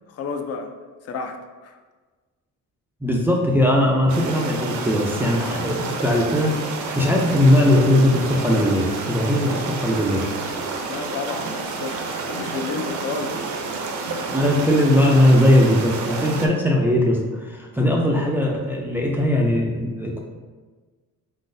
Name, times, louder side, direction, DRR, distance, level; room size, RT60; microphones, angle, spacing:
voice 1, 0.1-0.7 1.0-1.8 10.9-13.5, left 4 dB, 50° left, 5 dB, 0.5 m, -31 dB
voice 2, 3.0-10.3 14.3-20.2, left 1 dB, 5° right, -1 dB, 0.4 m, -19 dB
sound 1, 4.1-16.5, right 4 dB, 60° right, 0.6 m, -29 dB
4.1 x 3.8 x 2.6 m, 1.3 s
cardioid pair, 125°, 32 cm